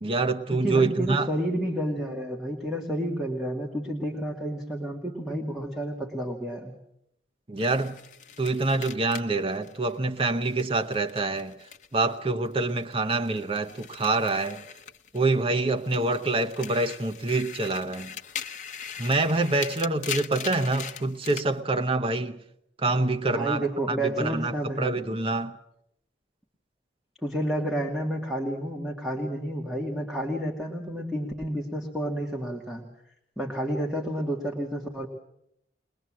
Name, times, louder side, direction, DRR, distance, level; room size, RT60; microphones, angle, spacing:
voice 1, 0.0-1.3 7.5-8.0 8.4-11.5 11.9-14.6 15.1-18.1 19.0-22.4 22.8-25.6, right 2 dB, 30° right, 0.8 m, -26 dB
voice 2, 0.5-6.7 23.3-25.2 27.2-32.8 33.4-35.1, right 1 dB, ahead, 2.3 m, -30 dB
sound 1, 7.6-12.2 12.5-15.4 15.8-21.5, left 8 dB, 45° left, 0.9 m, -40 dB
22.0 x 21.5 x 7.6 m
head